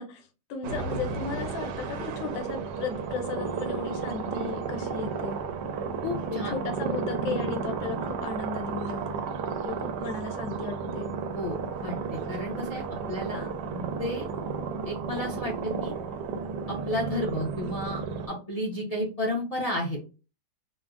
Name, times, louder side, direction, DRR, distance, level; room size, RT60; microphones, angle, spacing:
voice 1, 0.0-5.4 6.3-9.2 9.6-11.1 13.0-13.2 17.6-17.8, left 4 dB, 90° left, 5 dB, 1.4 m, -35 dB
sound 1, 0.6-18.3, right 5 dB, 75° right, 1.0 m, -33 dB
voice 2, 6.0-6.5 11.3-11.6 11.8-12.8 13.1-14.2 14.8-15.9 16.9-18.0 18.3-20.0, left 1 dB, 70° left, -3 dB, 0.3 m, -32 dB
4.3 x 2.1 x 2.4 m, 0.32 s
omnidirectional pair, 2.0 m